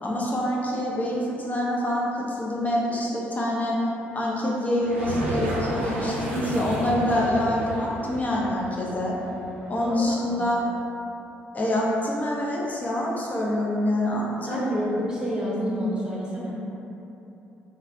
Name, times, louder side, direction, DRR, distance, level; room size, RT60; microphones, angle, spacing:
voice 1, 0.0-3.8 4.1-9.2 9.7-10.6 11.5-14.6, left 1 dB, 25° left, -4 dB, 0.7 m, -26 dB
sound 1, 4.7-10.4, right 1 dB, 80° right, 0.4 m, -33 dB
voice 2, 9.8-10.6 14.4-16.5, equal, 15° right, -6 dB, 1.0 m, -29 dB
3.3 x 2.3 x 3.7 m, 3.0 s
figure-of-eight pair, 45°, 6 cm